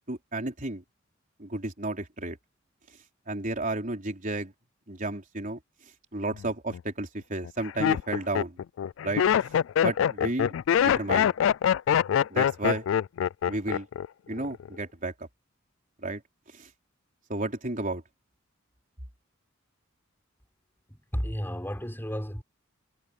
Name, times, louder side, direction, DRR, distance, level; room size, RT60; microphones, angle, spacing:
voice 1, 0.1-0.8 1.4-2.4 3.3-4.5 4.9-5.6 6.1-8.6 9.0-9.5 9.8-10.6 10.8-11.3 12.3-12.8 13.5-13.9 14.3-15.1 16.0-16.2 16.5-16.7 17.3-18.0, right 2 dB, 40° right, 4.1 m, -32 dB
Laughter, 6.4-6.8 7.4-14.1 14.3-14.8, left 8 dB, 70° left, 0.3 m, -24 dB
voice 2, 20.9-22.4, equal, 10° left, 5.1 m, -33 dB
head